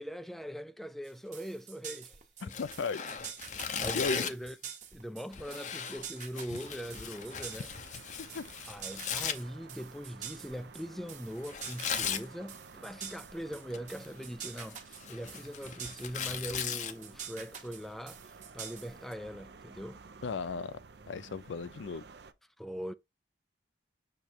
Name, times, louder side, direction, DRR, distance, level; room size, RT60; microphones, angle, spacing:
voice 1, 0.0-2.2 2.4-2.6 3.6-4.6 4.9-7.7 8.7-18.2 18.5-20.0 22.6-22.9, equal, ahead, 0.3 m, -41 dB
sound 1, 1.0-19.1, right 7 dB, 40° right, 1.2 m, -47 dB
voice 2, 2.4-3.0 3.9-4.2 6.5-6.6 8.2-8.5 20.2-20.8 21.1-22.0, left 5 dB, 85° left, 0.5 m, -36 dB
Tearing, 2.5-4.5 5.3-9.4 11.5-12.2 13.5-14.1 14.4-16.9, left 7 dB, 40° left, 0.6 m, -37 dB
sound 2, 6.6-22.3, right 4 dB, 65° right, 0.6 m, -54 dB
6.8 x 3.2 x 4.4 m
head